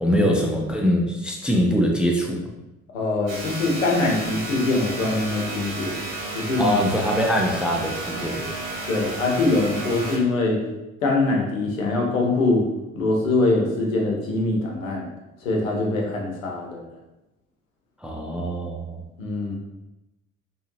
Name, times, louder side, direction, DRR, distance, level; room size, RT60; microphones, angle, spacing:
voice 1, 0.0-2.4 6.6-8.5 18.0-19.0, equal, 5° right, 0 dB, 0.3 m, -23 dB
voice 2, 2.9-6.0 6.3-6.8 8.9-10.6 11.0-12.6 12.9-15.1 15.4-16.8 19.2-19.6, left 2 dB, 70° left, 0 dB, 1.0 m, -23 dB
sound 1, 3.3-10.2, right 2 dB, 70° right, 1.0 m, -32 dB
4.5 x 3.0 x 2.7 m, 0.97 s
figure-of-eight pair, 60°, 41 cm